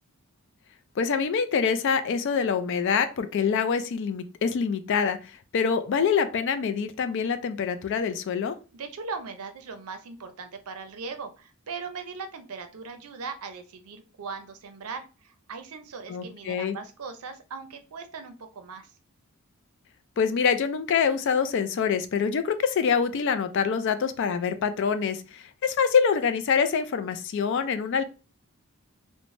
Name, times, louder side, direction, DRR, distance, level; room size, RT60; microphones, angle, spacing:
voice 1, 1.0-8.6 16.1-16.8 20.2-28.0, left 6 dB, 55° left, 10 dB, 0.3 m, -25 dB
voice 2, 8.7-18.9, right 4 dB, 75° right, 7 dB, 0.5 m, -39 dB
3.1 x 2.1 x 2.5 m, 0.32 s
head